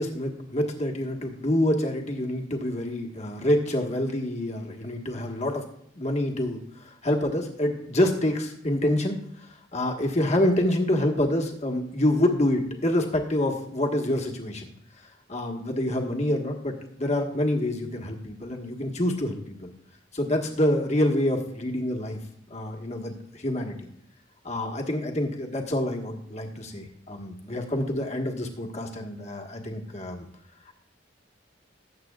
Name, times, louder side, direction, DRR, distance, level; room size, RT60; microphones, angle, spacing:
voice 1, 0.0-5.6 5.9-9.2 9.7-14.7 15.3-19.7 20.1-22.2 22.5-23.9 24.4-30.2 30.7-30.8, left 1 dB, 35° left, 2 dB, 1.4 m, -27 dB
19.5 x 7.7 x 2.4 m, 0.71 s
head